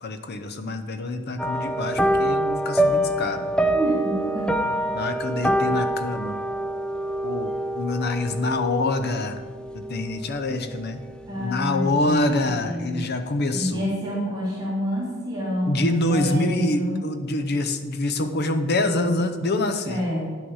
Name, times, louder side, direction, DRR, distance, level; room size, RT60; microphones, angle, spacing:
voice 1, 0.0-3.5 4.9-6.4 7.2-9.4 9.7-11.0 11.4-13.9 15.7-20.0, left 2 dB, 55° left, 8 dB, 0.7 m, -26 dB
sound 1, 1.4-11.0 11.2-11.6 12.0-12.1, right 1 dB, 5° left, 0.4 m, -26 dB
voice 2, 3.7-4.5 11.3-13.0 13.5-17.0 19.9-20.3, equal, 20° right, -6 dB, 2.3 m, -28 dB
9.7 x 6.2 x 4.8 m, 1.5 s
head